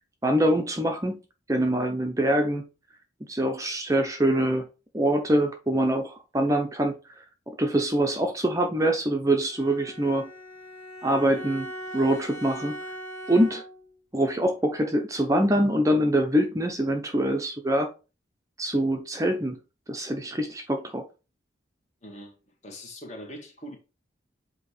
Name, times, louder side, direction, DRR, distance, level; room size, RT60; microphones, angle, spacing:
voice 1, 0.2-1.2 1.5-2.6 3.3-4.7 4.9-7.2 7.6-10.3 11.0-12.9 13.3-13.6 14.1-17.9 18.6-19.6 19.9-21.1, right 1 dB, 15° right, 0.6 m, -24 dB
Bowed string instrument, 9.5-13.9, equal, 55° left, 2.7 m, -40 dB
voice 2, 22.0-22.4 22.6-23.8, equal, 35° left, 1.9 m, -41 dB
8.0 x 2.9 x 4.9 m
head